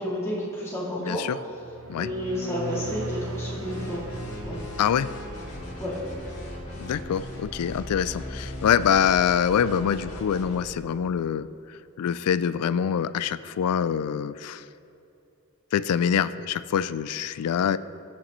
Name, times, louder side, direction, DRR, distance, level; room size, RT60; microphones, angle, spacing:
voice 1, 0.0-1.2 1.9-4.0 4.4-4.6 5.8-5.9, left 1 dB, 10° left, -8 dB, 2.4 m, -31 dB
voice 2, 1.0-1.4 1.9-2.1 4.8-5.1 6.8-14.6 15.7-17.8, left 8 dB, 80° left, 16 dB, 0.3 m, -25 dB
sound 1, 1.5-5.4, right 2 dB, 70° right, 1.0 m, -37 dB
sound 2, 3.6-10.7, equal, 65° left, 1.8 m, -38 dB
17.0 x 6.5 x 3.1 m, 2.6 s
head